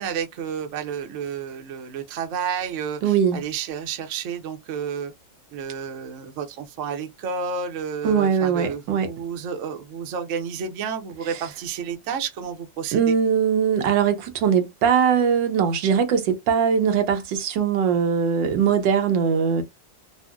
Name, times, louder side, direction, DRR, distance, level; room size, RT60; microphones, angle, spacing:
voice 1, 0.0-5.1 5.5-13.2, right 6 dB, 60° right, 0.8 m, -31 dB
voice 2, 3.0-3.4 8.0-9.1 12.9-19.6, right 7 dB, 80° right, 1.4 m, -21 dB
3.8 x 2.1 x 2.3 m
omnidirectional pair, 2.0 m